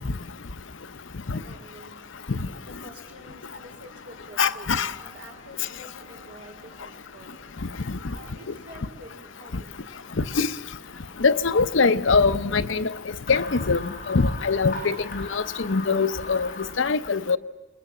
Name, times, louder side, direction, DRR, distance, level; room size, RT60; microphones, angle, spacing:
voice 1, 1.0-2.0 2.8-7.3 7.7-9.9, equal, 70° right, 4.4 m, -48 dB
sound 1, 1.5-16.7, left 3 dB, 45° left, 5.0 m, -45 dB
voice 2, 4.4-4.9 7.9-8.0 10.4-10.5 11.2-12.9 13.3-17.4, left 4 dB, 80° left, 0.8 m, -23 dB
27.5 x 21.0 x 7.4 m
head